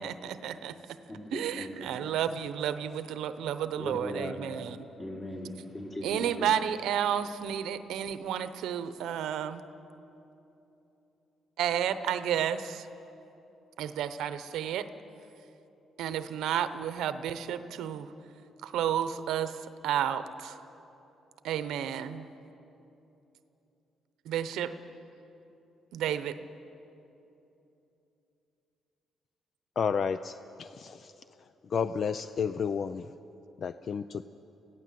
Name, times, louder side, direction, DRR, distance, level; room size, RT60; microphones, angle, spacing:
voice 1, 0.0-1.0 1.3-4.8 6.0-9.6 11.6-12.9 13.8-14.9 16.0-18.1 18.6-20.6 21.4-22.3 24.2-24.7 25.9-26.4, right 9 dB, 85° right, 11 dB, 0.8 m, -31 dB
voice 2, 1.1-1.7 3.8-4.3 5.0-6.5, left 1 dB, 30° left, -1 dB, 4.4 m, -38 dB
voice 3, 29.8-31.1 31.7-33.1 33.6-34.2, left 6 dB, 55° left, 12 dB, 0.5 m, -31 dB
22.0 x 16.0 x 7.7 m, 2.9 s
cardioid pair, 90°, 0 cm